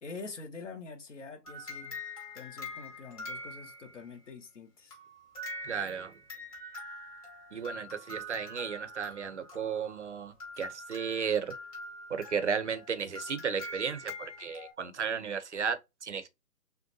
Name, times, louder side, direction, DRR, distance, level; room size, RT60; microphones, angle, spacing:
voice 1, 0.0-2.0 2.3-5.0, left 4 dB, 50° left, 1.1 m, -45 dB
sound 1, 1.4-4.1 4.9-14.7, left 1 dB, 25° left, 1.6 m, -44 dB
voice 2, 5.6-6.2 7.5-11.5 12.1-16.3, right 6 dB, 50° right, 0.7 m, -34 dB
6.4 x 2.2 x 2.6 m
hypercardioid pair, 165°, 47 cm